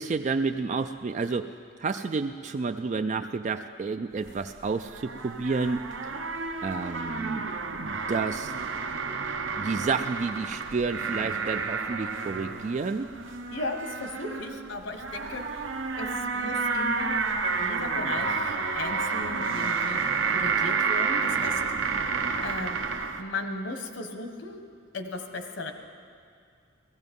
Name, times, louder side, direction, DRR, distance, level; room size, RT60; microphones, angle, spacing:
voice 1, 0.0-1.5 1.8-5.8 6.6-8.5 9.6-13.1, right 4 dB, 35° right, 8 dB, 0.3 m, -30 dB
sound 1, 4.2-23.2, right 4 dB, 70° right, 0.8 m, -30 dB
voice 2, 13.5-15.7 16.0-17.2 17.6-20.0 20.3-21.6 22.0-22.1 22.4-22.8 23.2-24.6 24.9-25.7, left 2 dB, 70° left, 6 dB, 1.3 m, -36 dB
16.0 x 15.5 x 5.4 m, 2.2 s
head